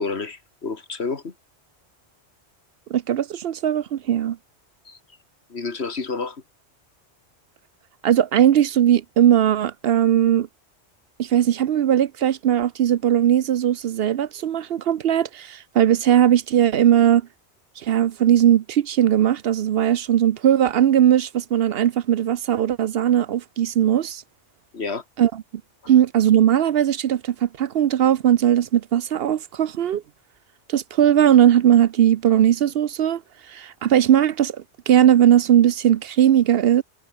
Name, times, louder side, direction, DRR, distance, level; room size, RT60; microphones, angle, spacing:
voice 1, 0.0-1.3 4.9-5.0 5.5-6.4 24.7-25.0, left 4 dB, 70° left, 2.3 m, -29 dB
voice 2, 2.9-4.4 8.0-10.5 11.2-17.2 17.8-24.2 25.2-25.3 25.9-30.0 30.7-33.2 33.5-34.6 34.9-36.8, right 10 dB, 65° right, 0.8 m, -18 dB
omnidirectional pair, 1.1 m